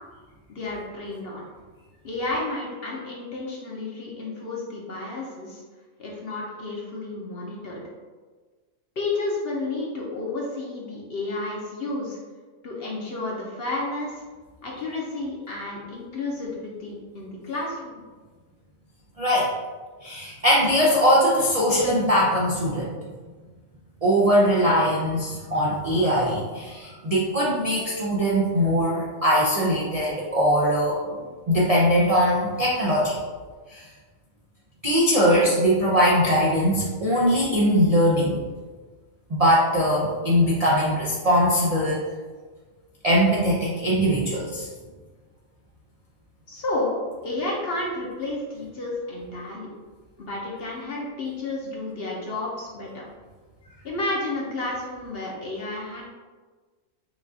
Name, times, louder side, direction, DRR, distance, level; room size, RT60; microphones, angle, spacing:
voice 1, 0.5-1.4 2.0-5.6 6.0-7.8 9.0-12.2 12.6-14.2 14.6-18.0 46.5-47.0 47.2-49.7 50.2-53.0 53.8-56.0, left 2 dB, 50° left, -3 dB, 0.8 m, -31 dB
voice 2, 19.2-19.5 20.0-23.0 24.0-31.0 31.5-33.2 33.7-33.8 34.8-38.4 39.3-42.0 43.0-44.7, equal, 65° right, -6 dB, 0.3 m, -21 dB
5.9 x 2.4 x 2.7 m, 1.4 s
omnidirectional pair, 1.5 m